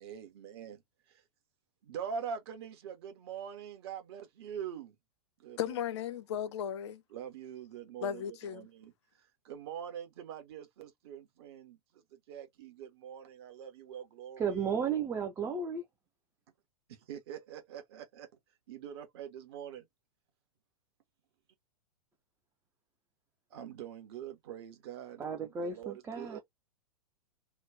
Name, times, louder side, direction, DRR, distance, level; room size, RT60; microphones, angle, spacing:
voice 1, 0.0-0.8 1.8-4.9 5.4-5.8 7.1-8.9 9.4-14.7 16.9-18.3 18.7-19.8 23.5-26.4, right 8 dB, 45° right, 0.9 m, -44 dB
voice 2, 5.6-7.0 8.0-8.7, left 9 dB, 50° left, 0.4 m, -36 dB
voice 3, 14.4-15.8 25.2-26.4, right 6 dB, 10° right, 0.4 m, -34 dB
3.1 x 2.1 x 3.5 m
figure-of-eight pair, 105°, 19 cm